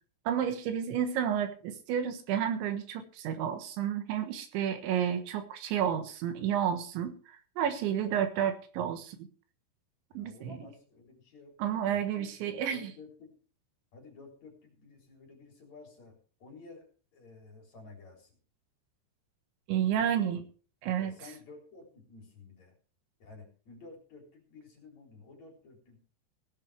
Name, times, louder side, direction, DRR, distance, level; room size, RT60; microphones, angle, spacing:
voice 1, 0.3-9.3 10.2-10.6 11.6-12.9 19.7-20.4 20.8-21.2, right 9 dB, 75° right, 8 dB, 3.7 m, -31 dB
voice 2, 10.1-11.6 11.8-13.4 13.9-16.9 17.1-18.4 20.0-20.4 21.0-22.7 23.2-26.0, left 3 dB, 40° left, 2 dB, 4.6 m, -52 dB
18.0 x 11.0 x 3.4 m, 0.39 s
omnidirectional pair, 5.4 m